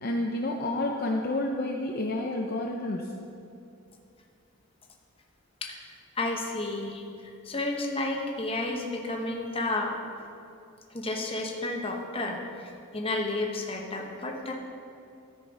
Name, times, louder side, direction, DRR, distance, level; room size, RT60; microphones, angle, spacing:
voice 1, 0.0-3.1, left 1 dB, 45° left, 1 dB, 0.5 m, -29 dB
voice 2, 5.6-10.0 10.9-14.5, left 2 dB, 25° left, 1 dB, 0.9 m, -32 dB
13.0 x 5.1 x 5.3 m, 2.6 s
head